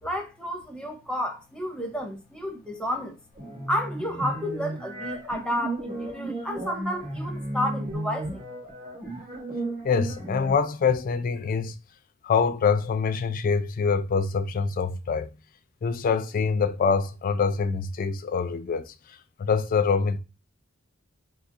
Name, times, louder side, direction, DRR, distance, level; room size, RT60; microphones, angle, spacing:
voice 1, 0.0-3.2 3.7-8.4, equal, 5° left, 0.6 m, -31 dB
sound 1, 3.4-10.5, right 1 dB, 40° right, 1.0 m, -34 dB
voice 2, 9.8-11.7 12.2-15.3 15.8-20.2, left 5 dB, 40° left, 0.3 m, -25 dB
3.8 x 2.8 x 2.4 m
head